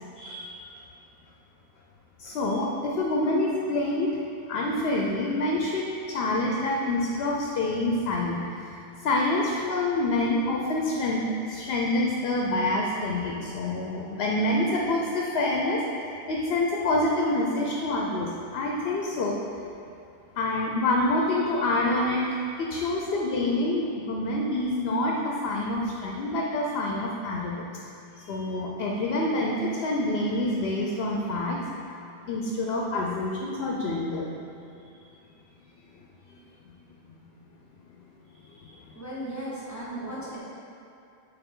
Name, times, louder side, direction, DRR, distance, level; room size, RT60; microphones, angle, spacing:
voice 1, 0.2-0.6 2.2-8.7 9.0-19.3 20.4-22.2 22.6-27.7 28.2-31.6 32.3-34.3 36.3-36.4 36.6-36.7 37.1-37.2 38.4-38.8, left 2 dB, 70° left, -1 dB, 0.8 m, -27 dB
voice 2, 38.9-40.4, right 1 dB, 15° left, -8 dB, 1.2 m, -36 dB
9.0 x 3.4 x 3.7 m, 2.6 s
omnidirectional pair, 1.1 m